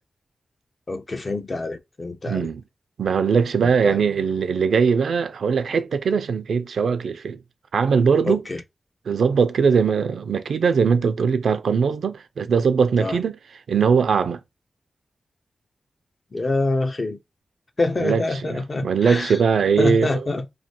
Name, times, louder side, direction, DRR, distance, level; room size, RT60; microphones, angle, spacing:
voice 1, 0.9-2.5 3.6-4.0 8.2-8.6 13.0-13.2 16.3-17.2 17.8-19.3 19.8-20.5, left 2 dB, 45° left, 0.5 m, -26 dB
voice 2, 2.3-2.6 3.0-7.4 7.7-8.4 9.1-13.4 13.7-14.4 18.0-20.3, right 6 dB, 85° right, 0.4 m, -20 dB
3.1 x 2.2 x 2.8 m
cardioid pair, 45°, 0 cm